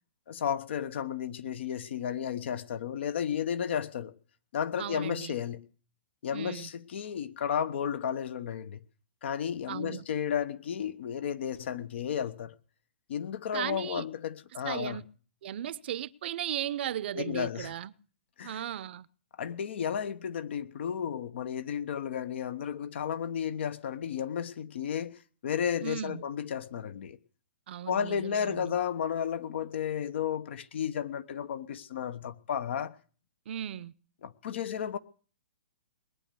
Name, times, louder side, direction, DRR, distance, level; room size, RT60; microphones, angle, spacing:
voice 1, 0.3-4.1 4.5-5.7 6.2-8.9 9.2-12.5 13.1-15.0 17.1-17.7 18.4-18.6 19.4-27.2 27.9-33.0 34.2-35.0, left 8 dB, 60° left, 1.2 m, -33 dB
voice 2, 4.8-5.4 6.3-6.7 9.7-10.1 13.5-14.0 14.6-15.0 15.4-17.9 18.4-19.1 25.8-26.2 27.7-28.7 33.5-33.9, right 11 dB, 55° right, 0.7 m, -36 dB
20.5 x 9.3 x 7.0 m
hypercardioid pair, 130°, 7 cm